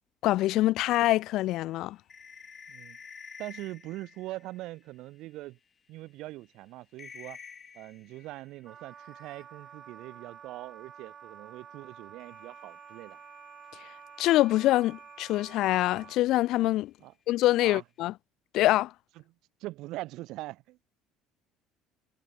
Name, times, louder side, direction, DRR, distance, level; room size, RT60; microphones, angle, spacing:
voice 1, 0.2-2.0 14.2-16.9 17.3-18.1 18.5-18.9, left 16 dB, 65° left, 0.6 m, -25 dB
sound 1, 1.2-5.4 6.0-6.1 6.4-6.6 6.9-9.8 12.2-16.6, left 6 dB, 30° left, 5.5 m, -52 dB
voice 2, 3.4-5.6 5.9-7.4 7.7-13.2 17.0-17.1 17.6-17.8 19.6-21.0, right 18 dB, 65° right, 2.4 m, -42 dB
Wind instrument woodwind instrument, 8.6-16.2, right 8 dB, 35° right, 2.4 m, -50 dB
cardioid pair, 130°, 0 cm